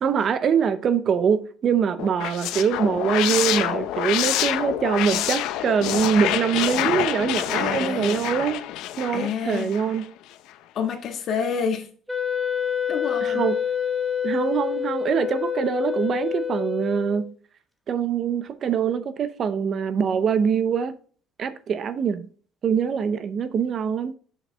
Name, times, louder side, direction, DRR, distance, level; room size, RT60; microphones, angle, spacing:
voice 1, 0.0-8.7 9.0-10.1 13.2-13.6 14.2-17.3 17.9-21.0 21.4-22.3 22.6-24.2, right 7 dB, 40° right, 0.6 m, -24 dB
sound 1, 2.0-10.0, left 13 dB, 85° left, 0.6 m, -27 dB
voice 2, 7.6-8.2 9.1-9.7 10.7-11.9 12.9-13.5, left 6 dB, 50° left, 1.5 m, -28 dB
Wind instrument woodwind instrument, 12.1-17.3, left 8 dB, ahead, 1.0 m, -27 dB
7.2 x 6.3 x 3.4 m
cardioid pair, 140°, 0 cm